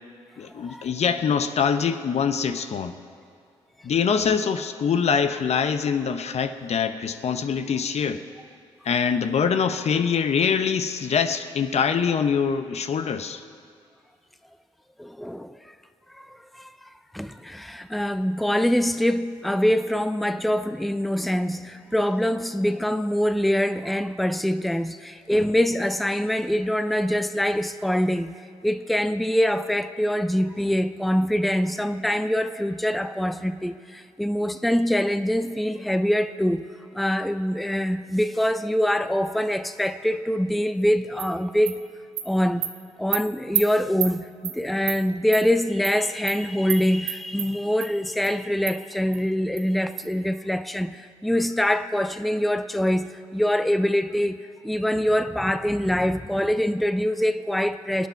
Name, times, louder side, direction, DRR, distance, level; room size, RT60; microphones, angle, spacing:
voice 1, 0.4-2.9 3.8-8.2 8.8-13.4, left 6 dB, 55° left, 9 dB, 0.9 m, -24 dB
voice 2, 15.0-15.7 16.2-16.9 17.1-28.3 28.6-36.6 36.9-41.8 42.2-42.7 43.0-58.1, equal, ahead, 11 dB, 0.6 m, -24 dB
Animal, 41.2-41.3 41.7-41.8 42.2-42.3 42.6-42.7 43.1-43.2 43.5-43.6 44.0-44.1 44.4-44.6 44.9-45.0 45.3-45.4 45.8-46.0 46.3-46.4 46.7-46.8 47.1-47.5 47.8-47.9 48.2-48.3 48.7-48.8 49.1-49.2 49.6-49.7 50.0-50.1, right 11 dB, 85° right, 0.8 m, -27 dB
24.0 x 9.2 x 4.6 m, 2.5 s
hypercardioid pair, 50°, 13 cm